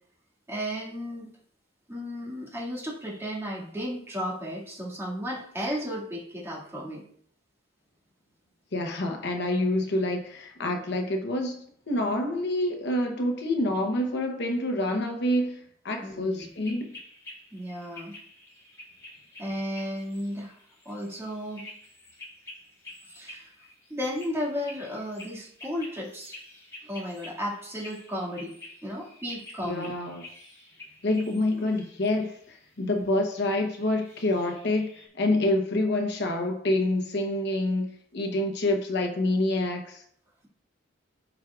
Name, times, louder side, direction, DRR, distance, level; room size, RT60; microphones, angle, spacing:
voice 1, 0.5-1.3 1.9-7.0 16.0-16.5 17.5-18.1 19.4-20.6 20.9-21.7 23.1-23.5 23.9-26.4 26.8-28.5 28.8-29.9 32.9-33.1, equal, 15° right, -4 dB, 2.1 m, -34 dB
voice 2, 8.7-17.0 29.7-30.2 31.0-40.0, left 1 dB, 65° left, 4 dB, 1.0 m, -27 dB
sound 1, 16.3-35.1, left 2 dB, 15° left, 2.3 m, -49 dB
14.0 x 4.7 x 2.4 m, 0.63 s
head